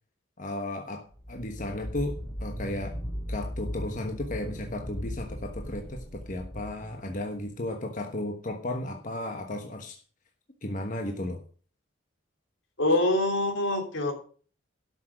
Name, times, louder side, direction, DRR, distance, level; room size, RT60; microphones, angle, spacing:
voice 1, 0.4-3.0 3.3-10.0 10.6-11.4, left 1 dB, 45° left, 1.3 m, -34 dB
sound 1, 1.1-7.6, equal, 15° left, 4.3 m, -37 dB
voice 2, 12.8-14.1, left 1 dB, 80° left, 3.4 m, -25 dB
12.5 x 6.4 x 6.1 m
head